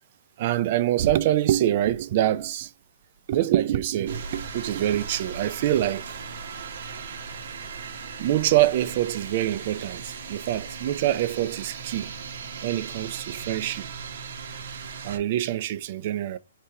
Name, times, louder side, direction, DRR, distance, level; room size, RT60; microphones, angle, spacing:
voice 1, 0.4-2.7 3.3-6.2 8.2-12.1 12.6-13.9 15.0-16.4, right 13 dB, 45° right, 0.3 m, -25 dB
sound 1, 4.1-15.2, right 5 dB, 60° right, 0.7 m, -38 dB
4.6 x 3.3 x 2.8 m
hypercardioid pair, 155°, 0 cm